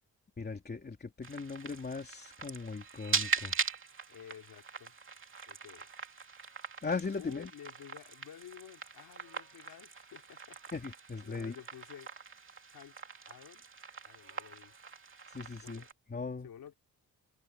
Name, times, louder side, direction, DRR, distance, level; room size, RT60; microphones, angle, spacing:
voice 1, 0.4-3.5 6.8-7.5 10.7-11.5 15.3-16.5, left 4 dB, 25° left, 3.1 m, -39 dB
sound 1, 1.2-15.9, right 5 dB, 35° right, 2.7 m, -41 dB
voice 2, 4.1-5.0 5.5-5.9 7.1-10.6 11.2-12.1 12.7-13.0 13.3-13.7 14.0-14.7 15.6-15.9 16.4-16.7, left 9 dB, 80° left, 3.4 m, -52 dB
wide cardioid pair, 140°, 35 cm